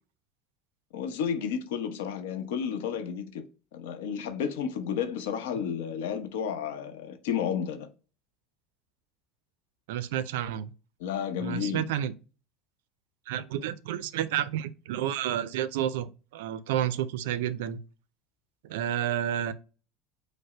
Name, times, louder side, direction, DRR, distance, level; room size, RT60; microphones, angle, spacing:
voice 1, 0.9-3.4 3.7-7.9 11.0-11.9, left 7 dB, 90° left, 0.8 m, -32 dB
voice 2, 9.9-10.7 11.4-12.1 13.3-17.8 18.7-19.5, right 11 dB, 90° right, 0.4 m, -30 dB
5.2 x 2.0 x 4.7 m
supercardioid pair, 130°, 0 cm